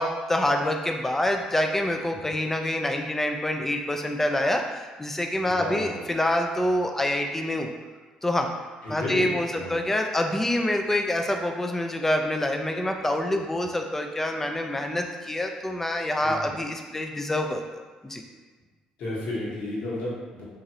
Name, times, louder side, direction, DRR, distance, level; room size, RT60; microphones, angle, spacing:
voice 1, 0.0-7.7 8.2-8.5 8.9-18.2, left 1 dB, 15° left, 3 dB, 0.3 m, -26 dB
voice 2, 5.4-6.1 8.8-9.8 16.2-16.5 19.0-20.4, left 2 dB, 70° left, -7 dB, 1.1 m, -33 dB
2.9 x 2.4 x 2.8 m, 1.4 s
cardioid pair, 95°, 2 cm